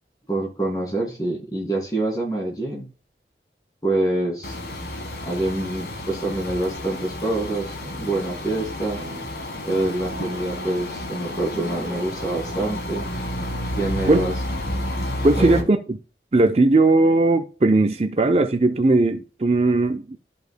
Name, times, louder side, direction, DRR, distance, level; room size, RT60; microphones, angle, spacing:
voice 1, 0.3-2.9 3.8-4.6 5.2-9.0 9.6-13.1 13.8-14.3 15.4-15.7, right 2 dB, 20° left, 2.6 m, -26 dB
sound 1, 4.4-15.6, left 1 dB, 65° left, 1.5 m, -31 dB
sound 2, 7.8-12.6, right 1 dB, 75° right, 1.5 m, -40 dB
voice 2, 15.2-16.0 16.3-20.2, right 2 dB, 35° right, 0.5 m, -18 dB
13.0 x 5.3 x 2.2 m
head